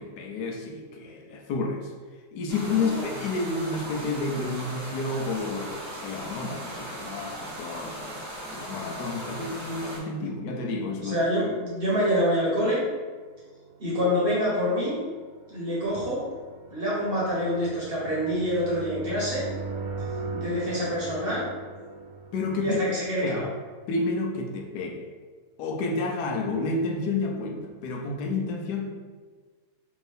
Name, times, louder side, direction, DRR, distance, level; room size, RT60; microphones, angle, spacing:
voice 1, 0.0-1.9 2.3-11.2 22.3-22.8 23.2-23.4 23.9-25.1 25.6-28.9, left 3 dB, 85° left, 2 dB, 1.2 m, -30 dB
sound 1, 2.5-10.0, right 1 dB, 55° right, 1.3 m, -38 dB
voice 2, 11.0-12.8 13.8-15.0 15.5-16.2 16.7-19.4 20.3-21.4 22.6-23.4, equal, 40° right, -7 dB, 1.1 m, -26 dB
sound 2, 12.9-23.7, right 3 dB, 75° right, 1.1 m, -39 dB
3.6 x 2.6 x 3.3 m, 1.5 s
omnidirectional pair, 1.7 m